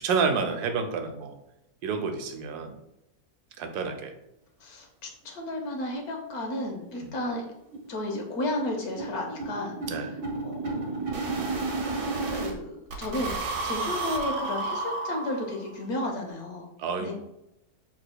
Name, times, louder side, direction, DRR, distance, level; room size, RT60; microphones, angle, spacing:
voice 1, 0.0-1.4 1.8-2.8 3.6-4.1 6.9-7.2 9.9-10.1 16.8-17.1, right 5 dB, 85° right, 6 dB, 1.2 m, -29 dB
voice 2, 4.6-7.4 7.9-10.1 10.4-10.7 12.3-16.7 17.0-17.1, left 1 dB, 70° left, 2 dB, 1.4 m, -33 dB
sound 1, 5.7-5.8 6.1-6.2 6.5-6.6 6.9-7.1 7.3-12.5 12.9-15.7, right 3 dB, 60° right, 1.2 m, -32 dB
6.6 x 3.4 x 2.2 m, 0.87 s
omnidirectional pair, 1.7 m